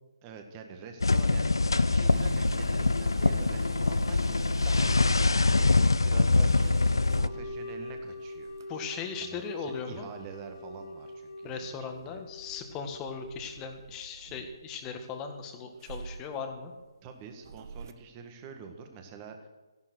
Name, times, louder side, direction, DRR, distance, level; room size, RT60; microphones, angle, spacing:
voice 1, 0.2-8.5 9.2-12.2 17.0-19.5, right 6 dB, 25° right, 5 dB, 1.8 m, -46 dB
sound 1, 1.0-7.3, left 3 dB, 80° left, 0.6 m, -24 dB
sound 2, 2.1-11.2 11.5-15.3 15.8-17.9, right 5 dB, 50° right, 0.8 m, -44 dB
sound 3, 7.0-13.8, left 2 dB, 40° left, 2.3 m, -44 dB
voice 2, 8.7-10.1 11.4-16.7, left 5 dB, 20° left, 5 dB, 1.6 m, -38 dB
14.0 x 11.5 x 6.4 m, 1.2 s
figure-of-eight pair, 145°, 2 cm